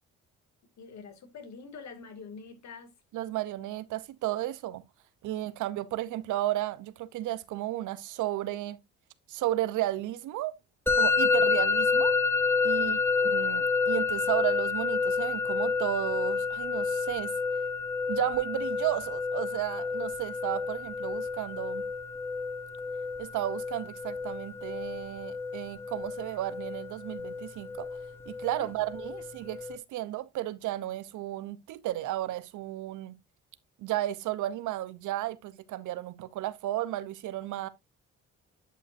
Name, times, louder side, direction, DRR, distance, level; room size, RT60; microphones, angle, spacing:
voice 1, 0.8-2.9 5.3-5.5 12.8-13.0 28.6-28.7, left 5 dB, 65° left, 2.4 m, -45 dB
voice 2, 3.1-4.8 5.2-8.8 9.3-10.6 10.9-12.1 12.6-17.3 18.1-21.9 23.2-27.9 28.3-33.2 33.8-37.7, right 14 dB, 80° right, 0.7 m, -33 dB
Musical instrument, 10.9-29.8, left 4 dB, 10° left, 1.2 m, -29 dB
11.0 x 5.4 x 2.6 m
cardioid pair, 90°, 30 cm